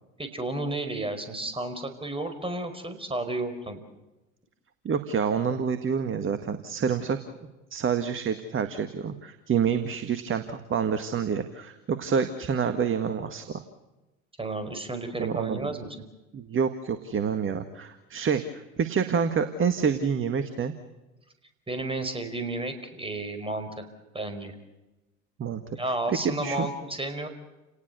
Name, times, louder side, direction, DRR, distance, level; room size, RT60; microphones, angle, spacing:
voice 1, 0.2-3.8 14.4-16.0 21.7-23.9 24.1-24.6 25.8-27.3, right 2 dB, 15° right, 8 dB, 5.1 m, -32 dB
voice 2, 4.8-7.2 7.7-13.6 15.2-15.7 16.3-20.7 25.4-25.8 26.1-26.7, right 6 dB, 30° right, 9 dB, 1.9 m, -27 dB
30.0 x 19.0 x 7.0 m, 1.0 s
figure-of-eight pair, 70°, 41 cm